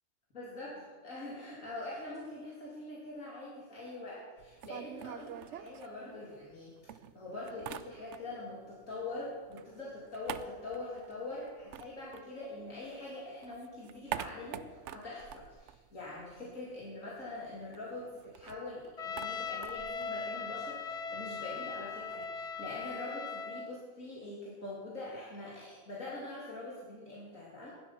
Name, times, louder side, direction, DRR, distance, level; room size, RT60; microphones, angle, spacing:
voice 1, 0.3-0.7 1.0-6.7 7.1-27.7, left 2 dB, 80° left, -6 dB, 3.3 m, -43 dB
sound 1, 4.4-6.6 6.9-8.5 8.8-12.9 13.3-16.6 16.8-16.9 17.2-23.0, right 10 dB, 65° right, 0.9 m, -46 dB
Trumpet, 19.0-23.7, left 5 dB, 45° left, 0.5 m, -39 dB
16.5 x 11.5 x 5.8 m, 1.4 s
omnidirectional pair, 1.4 m